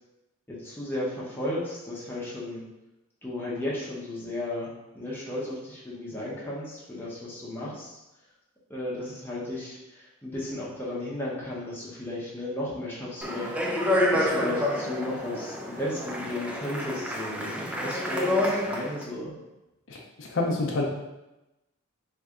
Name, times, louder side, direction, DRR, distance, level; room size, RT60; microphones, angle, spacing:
voice 1, 0.5-2.6 3.2-8.0 8.7-13.5 14.1-19.3, left 1 dB, 10° left, -6 dB, 0.8 m, -34 dB
Speech, 13.2-19.0, left 1 dB, 5° right, 0.3 m, -28 dB
voice 2, 19.9-20.8, left 2 dB, 60° left, -1 dB, 0.6 m, -28 dB
3.2 x 2.6 x 3.6 m, 0.97 s
head